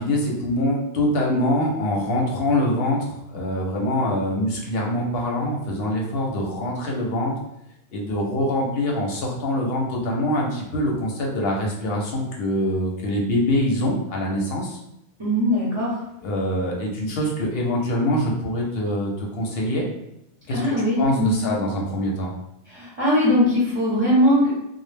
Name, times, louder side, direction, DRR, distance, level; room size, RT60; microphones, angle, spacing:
voice 1, 0.0-7.3 7.9-14.8 16.2-19.9 20.5-22.3, left 1 dB, 65° left, -1 dB, 0.8 m, -24 dB
voice 2, 15.2-16.0 20.5-21.3 22.7-24.5, left 1 dB, 30° right, -8 dB, 0.7 m, -20 dB
2.2 x 2.0 x 3.1 m, 0.82 s
omnidirectional pair, 1.2 m